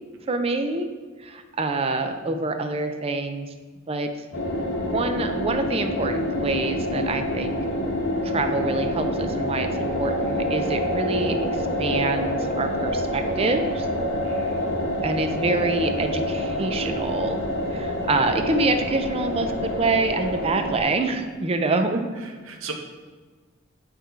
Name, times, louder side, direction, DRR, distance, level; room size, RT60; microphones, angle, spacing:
voice 1, 0.3-0.9 1.2-3.5 3.9-4.1 4.9-7.6 8.2-11.4 11.8-13.9 15.0-17.4 17.7-22.1, right 3 dB, 30° right, 7 dB, 0.4 m, -26 dB
sound 1, 4.3-20.8, left 1 dB, 60° left, 1.0 m, -27 dB
voice 2, 14.2-14.6 22.1-22.7, right 5 dB, 75° right, 3 dB, 0.8 m, -38 dB
8.6 x 3.1 x 4.5 m, 1.5 s
head